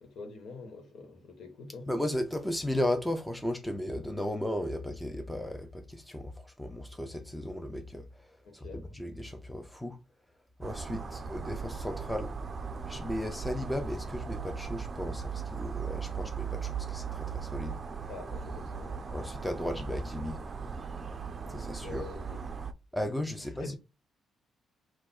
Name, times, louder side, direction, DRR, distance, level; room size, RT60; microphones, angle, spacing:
voice 1, 0.0-1.9 8.4-8.8 18.1-19.0 21.6-22.4 23.6-23.8, left 3 dB, 65° left, 1.5 m, -45 dB
voice 2, 1.9-8.3 8.5-10.0 10.6-12.4 12.9-17.8 19.1-20.4 21.5-22.1 22.9-23.8, left 1 dB, 5° left, 0.7 m, -35 dB
sound 1, 10.6-22.7, right 6 dB, 40° right, 0.5 m, -38 dB
4.2 x 2.5 x 4.3 m
cardioid pair, 90°, 0 cm